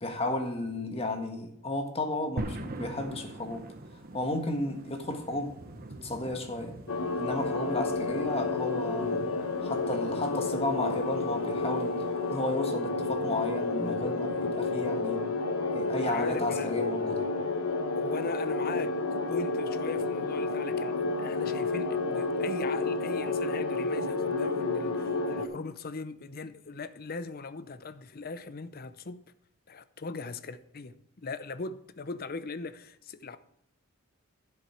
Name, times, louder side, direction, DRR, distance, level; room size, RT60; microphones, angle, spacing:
voice 1, 0.0-3.6 4.1-5.5 6.0-6.8 7.2-9.3 9.6-15.2 15.7-17.3, left 2 dB, 30° left, 1.6 m, -33 dB
sound 1, 2.4-12.5, right 1 dB, 45° right, 0.9 m, -44 dB
sound 2, 6.9-25.5, left 3 dB, 85° left, 1.1 m, -30 dB
voice 2, 16.0-16.7 17.9-29.2 29.7-31.0 31.2-33.4, left 4 dB, 45° left, 0.6 m, -39 dB
11.0 x 7.6 x 4.5 m
head